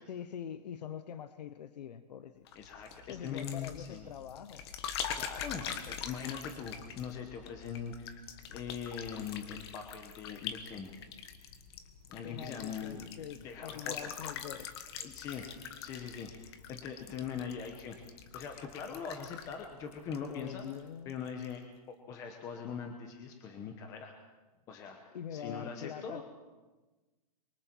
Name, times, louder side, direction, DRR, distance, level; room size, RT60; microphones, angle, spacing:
voice 1, 0.1-2.4 3.1-4.7 12.2-14.7 20.3-21.1 25.1-26.2, left 9 dB, 80° left, 12 dB, 1.1 m, -44 dB
sound 1, 2.5-20.8 21.1-21.5, left 8 dB, 40° left, 1.5 m, -44 dB
voice 2, 2.5-4.1 5.1-8.2 8.5-11.0 12.1-14.1 15.0-15.5 15.8-18.0 18.3-20.7 21.0-24.2 24.7-26.2, left 7 dB, 15° left, 4 dB, 1.0 m, -42 dB
27.0 x 23.5 x 4.6 m, 1.2 s
supercardioid pair, 175°, 21 cm